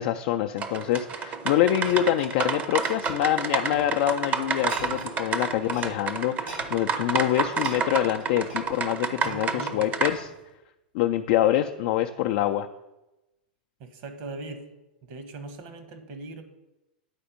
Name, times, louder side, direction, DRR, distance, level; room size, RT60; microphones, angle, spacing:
voice 1, 0.0-10.3 10.9-12.7, left 12 dB, 55° left, 6 dB, 0.4 m, -25 dB
sound 1, 0.6-10.1, right 5 dB, 30° right, 0.7 m, -30 dB
sound 2, 0.8-4.0 4.4-5.1 5.4-5.9 6.2-10.5 11.0-11.2, right 1 dB, 85° right, 2.8 m, -45 dB
voice 2, 9.2-9.9 13.8-14.6 15.0-16.4, right 2 dB, 55° right, 9 dB, 1.2 m, -39 dB
9.7 x 4.2 x 5.2 m, 1.0 s
hypercardioid pair, 100°, 5 cm